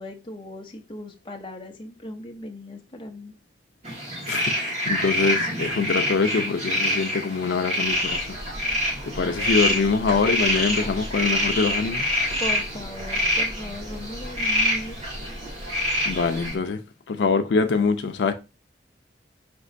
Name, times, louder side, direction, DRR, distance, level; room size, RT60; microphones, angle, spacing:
voice 1, 0.0-3.3 12.4-15.0, left 1 dB, 25° left, 0.6 m, -37 dB
sound 1, 3.8-16.5, equal, 40° right, 1.4 m, -26 dB
voice 2, 4.3-8.4 9.0-12.1 16.1-16.8 17.1-18.3, left 4 dB, 80° left, 0.4 m, -24 dB
sound 2, 7.8-16.5, equal, 75° right, 1.2 m, -39 dB
5.3 x 2.9 x 2.5 m
head